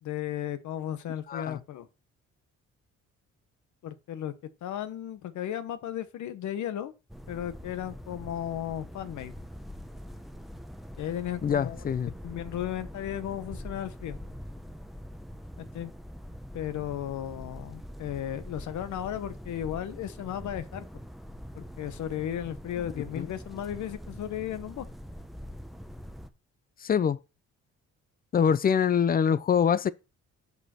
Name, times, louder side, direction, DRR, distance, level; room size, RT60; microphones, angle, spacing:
voice 1, 0.0-1.9 3.8-4.3 4.6-6.9 7.3-9.3 11.0-11.8 12.2-14.2 15.6-15.9 16.5-20.8 21.5-24.9, left 11 dB, 70° left, 1.0 m, -35 dB
voice 2, 1.3-1.6 11.4-12.1 23.2-23.3 26.8-27.2 28.3-29.9, left 7 dB, 30° left, 0.5 m, -24 dB
sound 1, 7.1-26.3, equal, ahead, 0.7 m, -44 dB
6.5 x 5.4 x 4.3 m
cardioid pair, 90°, 30 cm